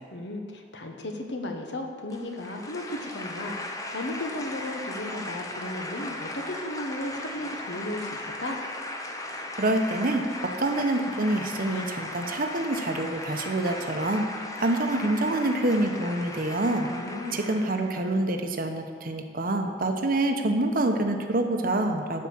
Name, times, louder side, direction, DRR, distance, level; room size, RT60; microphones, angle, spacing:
voice 1, 0.1-8.6 16.9-17.4, left 1 dB, 70° left, 3 dB, 1.2 m, -35 dB
sound 1, 2.1-18.1, left 2 dB, 20° left, 0.8 m, -37 dB
voice 2, 9.6-14.3 14.6-16.9 17.3-22.3, right 2 dB, 50° right, 5 dB, 0.9 m, -26 dB
12.0 x 4.9 x 7.2 m, 2.1 s
head